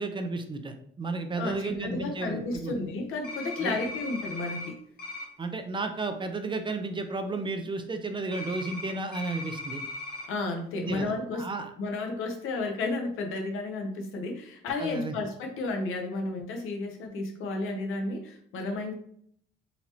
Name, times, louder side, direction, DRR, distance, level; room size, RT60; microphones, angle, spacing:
voice 1, 0.0-2.7 3.6-3.8 5.4-9.8 10.8-11.7 14.8-15.2, right 3 dB, 25° right, 6 dB, 0.5 m, -33 dB
voice 2, 1.4-4.7 10.3-11.5 11.8-18.9, left 2 dB, 80° left, 4 dB, 0.8 m, -32 dB
sound 1, 3.2-4.7 5.0-5.2 8.3-10.3, left 2 dB, 45° left, 1.0 m, -38 dB
4.0 x 2.9 x 2.9 m, 0.65 s
cardioid pair, 95°, 21 cm